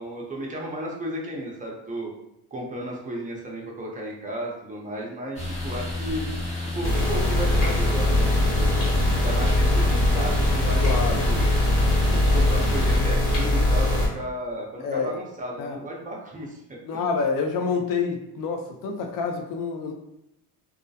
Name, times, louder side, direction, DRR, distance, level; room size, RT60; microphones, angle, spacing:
voice 1, 0.0-2.1 2.5-6.2 6.7-8.3 8.6-8.8 9.2-11.4 12.3-16.6 16.9-17.1, right 1 dB, 20° right, -2 dB, 0.6 m, -34 dB
sound 1, 5.3-13.0, left 2 dB, 15° left, 0.7 m, -31 dB
sound 2, 6.8-14.1, left 1 dB, 85° left, 1.2 m, -21 dB
voice 2, 10.8-11.2 14.8-15.1 15.6-15.8 16.8-19.9, left 5 dB, 60° left, 4 dB, 0.4 m, -27 dB
2.3 x 2.1 x 2.6 m, 0.84 s
cardioid pair, 110°, 38 cm